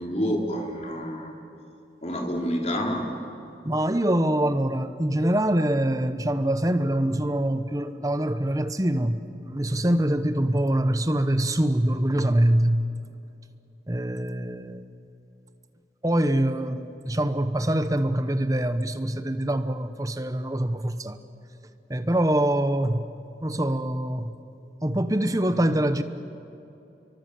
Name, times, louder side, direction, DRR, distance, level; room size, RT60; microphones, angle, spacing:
voice 1, 0.0-1.3 2.0-3.1, equal, 35° left, 1 dB, 3.5 m, -28 dB
voice 2, 3.6-12.8 13.9-14.8 16.0-21.2 21.9-23.1 23.4-24.3 24.8-26.0, right 1 dB, 20° right, 10 dB, 1.0 m, -24 dB
28.5 x 23.5 x 7.7 m, 2.8 s
head